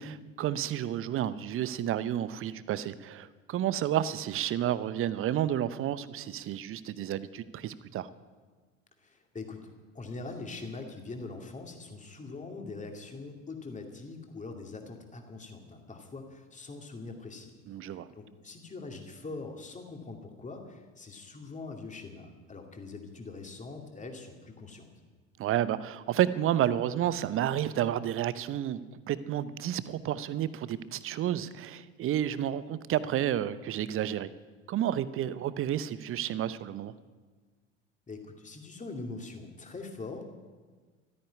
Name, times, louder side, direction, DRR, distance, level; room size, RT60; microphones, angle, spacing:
voice 1, 0.0-8.1 17.7-18.1 25.4-28.8 29.1-34.3 34.7-36.9, right 11 dB, 35° right, 16 dB, 0.8 m, -31 dB
voice 2, 9.0-9.7 9.9-17.5 17.9-24.9 38.1-40.3, left 3 dB, 20° left, 3 dB, 2.5 m, -43 dB
13.5 x 9.6 x 9.4 m, 1.4 s
figure-of-eight pair, 65°, 38 cm